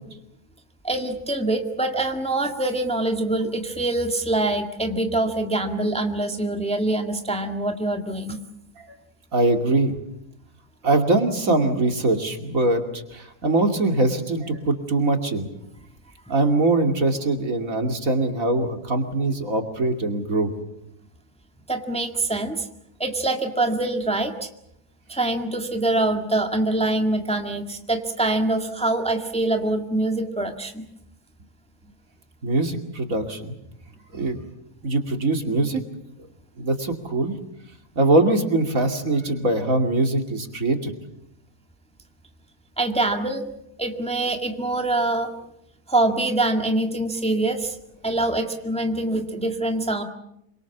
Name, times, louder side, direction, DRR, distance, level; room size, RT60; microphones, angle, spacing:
voice 1, 0.8-8.4 21.7-22.7 23.0-24.5 25.1-30.9 42.8-43.5 43.8-45.3 45.9-47.8 48.0-50.0, right 2 dB, 5° left, 5 dB, 1.8 m, -24 dB
voice 2, 9.3-9.9 10.8-15.5 16.3-20.5 32.4-33.5 34.1-34.4 34.8-35.8 36.6-37.3 38.0-40.9, right 2 dB, 55° right, 5 dB, 2.9 m, -22 dB
27.0 x 24.5 x 7.3 m, 0.80 s
omnidirectional pair, 1.7 m